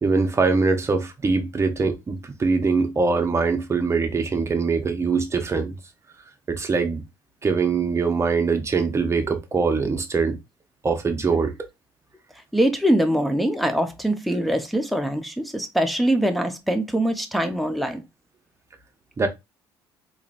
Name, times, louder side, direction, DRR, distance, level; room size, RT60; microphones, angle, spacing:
voice 1, 0.0-5.7 6.5-7.0 7.4-10.4 10.8-11.5 19.2-19.3, right 4 dB, 25° right, 0.9 m, -22 dB
voice 2, 12.5-18.0, right 1 dB, ahead, 0.7 m, -23 dB
3.8 x 3.0 x 2.5 m
supercardioid pair, 90°, 10 cm